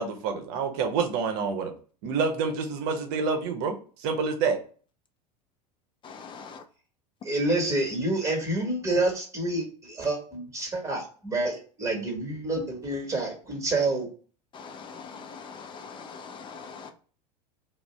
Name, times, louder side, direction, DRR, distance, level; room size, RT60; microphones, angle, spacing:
voice 1, 0.0-1.7 2.0-3.8 4.0-4.6, right 5 dB, 50° right, 0.8 m, -27 dB
voice 2, 6.0-6.6 14.5-16.9, left 5 dB, 25° left, 0.5 m, -42 dB
voice 3, 7.2-14.1, right 2 dB, 15° right, 1.2 m, -28 dB
2.5 x 2.1 x 3.1 m
figure-of-eight pair, 85°, 21 cm